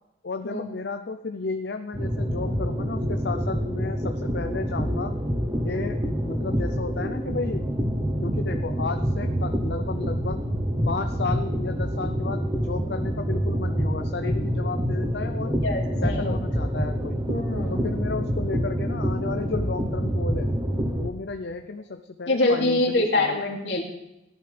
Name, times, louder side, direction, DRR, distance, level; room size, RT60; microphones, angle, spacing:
voice 1, 0.2-5.1 5.6-7.6 8.2-10.5 10.9-15.6 16.0-17.2 17.7-20.5 21.0-23.4, left 4 dB, 70° left, 6 dB, 0.6 m, -33 dB
sound 1, 1.9-21.1, equal, 25° right, 1.0 m, -27 dB
voice 2, 15.6-16.4 17.3-17.9 22.3-23.8, left 2 dB, 90° left, 0 dB, 2.7 m, -24 dB
17.5 x 11.0 x 3.4 m, 0.89 s
head